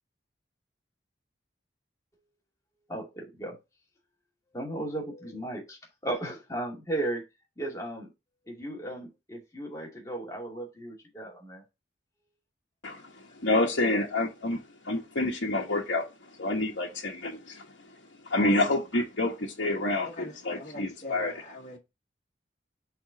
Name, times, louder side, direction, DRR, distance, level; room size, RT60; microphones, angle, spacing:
voice 1, 2.9-3.6 4.5-7.2 7.6-8.1 8.5-11.6, right 1 dB, 15° left, 2.4 m, -35 dB
voice 2, 12.8-14.6 14.8-17.7 18.2-21.4, left 2 dB, 80° left, 1.4 m, -28 dB
voice 3, 19.9-21.2 21.5-21.8, left 2 dB, 40° left, 1.8 m, -42 dB
5.9 x 4.2 x 5.1 m
head